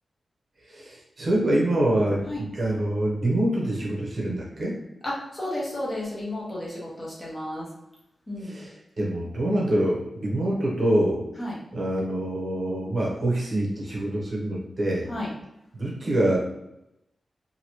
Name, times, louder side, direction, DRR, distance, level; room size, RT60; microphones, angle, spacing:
voice 1, 0.7-4.8 8.4-11.2 11.7-15.1 15.7-16.4, right 1 dB, 40° right, -3 dB, 0.8 m, -25 dB
voice 2, 5.0-7.7 8.3-8.6 11.4-11.6 15.1-15.3, left 1 dB, 20° left, -5 dB, 0.9 m, -32 dB
2.9 x 2.7 x 2.9 m, 0.86 s
wide cardioid pair, 150°, 0 cm